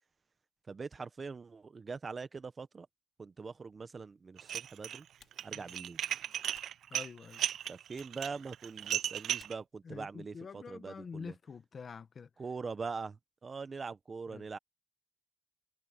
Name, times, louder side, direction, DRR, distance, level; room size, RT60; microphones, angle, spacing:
voice 1, 0.7-2.9 3.2-5.1 5.4-6.0 7.7-11.3 12.4-14.6, right 4 dB, 35° right, 1.1 m, -42 dB
Typing, 3.4-10.9, left 9 dB, 65° left, 3.6 m, -70 dB
Dishes pots and pans, 4.4-5.0 5.3-9.5, right 10 dB, 70° right, 0.4 m, -36 dB
voice 2, 6.9-7.4 9.8-12.3 14.3-14.5, left 5 dB, 45° left, 1.3 m, -46 dB
cardioid pair, 90°, 0 cm